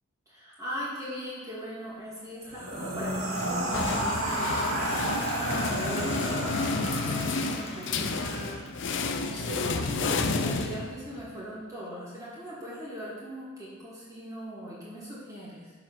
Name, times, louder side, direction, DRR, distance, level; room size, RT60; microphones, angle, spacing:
voice 1, 0.3-15.7, equal, 15° right, -8 dB, 2.5 m, -40 dB
sound 1, 2.4-7.7, right 1 dB, 80° right, 2.6 m, -31 dB
sound 2, 3.4-11.3, left 3 dB, 60° left, 0.7 m, -31 dB
Applause / Crowd, 3.4-9.5, left 3 dB, 30° left, 1.3 m, -44 dB
11.5 x 5.0 x 6.1 m, 1.4 s
head